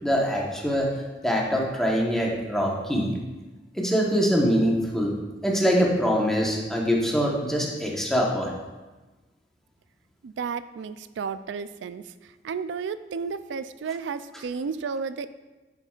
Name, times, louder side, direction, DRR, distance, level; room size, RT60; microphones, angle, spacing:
voice 1, 0.0-0.9 1.2-3.2 3.7-5.1 5.4-8.5, equal, 5° left, -2 dB, 1.1 m, -24 dB
voice 2, 10.2-12.0 12.4-15.3, right 5 dB, 80° right, 13 dB, 0.3 m, -32 dB
10.5 x 5.8 x 2.4 m, 1.2 s
head